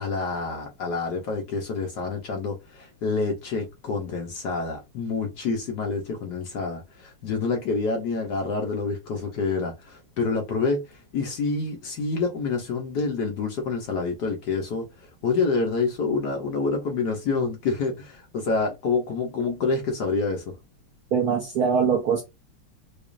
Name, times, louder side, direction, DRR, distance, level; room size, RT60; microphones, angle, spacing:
voice 1, 0.0-20.4, left 4 dB, 65° left, 1.1 m, -27 dB
voice 2, 21.1-22.2, right 6 dB, 70° right, 0.9 m, -22 dB
5.0 x 2.3 x 2.5 m
omnidirectional pair, 2.4 m